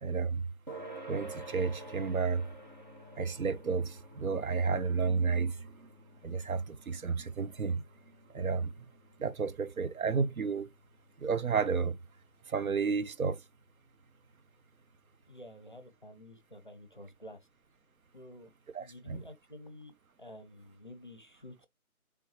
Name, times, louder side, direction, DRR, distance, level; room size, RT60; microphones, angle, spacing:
voice 1, 0.0-0.5 1.1-2.5 3.2-5.9 6.2-7.8 8.3-8.8 9.2-10.7 11.2-12.0 12.5-13.4 18.7-19.2, right 5 dB, 70° right, 0.6 m, -32 dB
sound 1, 0.7-15.6, right 1 dB, 30° right, 0.7 m, -52 dB
voice 2, 15.3-17.5 18.1-18.5 18.8-19.9 20.2-21.7, left 1 dB, 35° left, 0.6 m, -50 dB
3.8 x 3.5 x 2.7 m
figure-of-eight pair, 160°, 44 cm